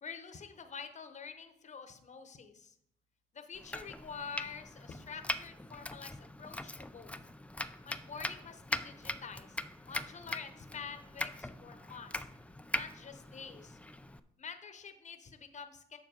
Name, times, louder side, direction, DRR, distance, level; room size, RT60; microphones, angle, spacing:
voice 1, 0.0-2.8 3.3-7.2 7.8-9.6 9.8-12.2 12.7-13.8 14.4-16.0, left 6 dB, 35° left, 7 dB, 1.0 m, -47 dB
Domestic sounds home sounds, 3.5-14.2, left 2 dB, 5° left, 0.4 m, -41 dB
7.2 x 6.5 x 5.0 m, 0.75 s
cardioid pair, 90°, 20 cm